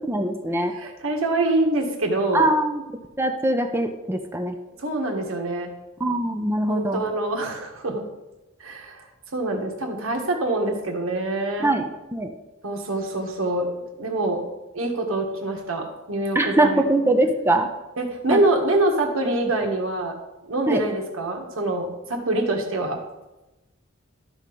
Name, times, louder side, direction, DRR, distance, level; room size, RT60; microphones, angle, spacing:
voice 1, 0.1-0.7 2.3-2.8 3.2-4.5 6.0-7.0 11.6-12.3 16.3-17.7 18.3-18.4 20.7-20.8, right 1 dB, 10° right, 5 dB, 0.6 m, -22 dB
voice 2, 0.7-2.5 4.8-5.7 6.7-8.0 8.6-9.0 9.3-11.7 12.6-13.7 14.0-14.5 14.7-16.8 18.0-20.2 20.4-23.0, right 2 dB, 85° right, 2 dB, 1.6 m, -25 dB
12.0 x 4.4 x 5.2 m, 1.0 s
head